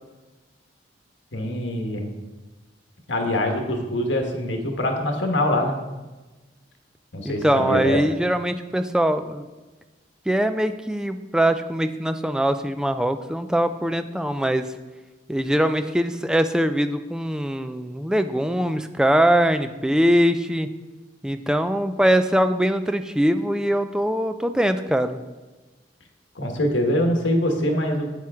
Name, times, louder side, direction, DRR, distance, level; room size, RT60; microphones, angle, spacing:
voice 1, 1.3-2.1 3.1-5.7 7.1-8.0 26.3-28.1, left 1 dB, 85° left, 3 dB, 1.3 m, -24 dB
voice 2, 7.2-9.5 10.3-14.7 15.3-20.7 21.2-25.2, equal, 5° right, 9 dB, 0.3 m, -22 dB
9.2 x 7.4 x 3.6 m, 1.2 s
head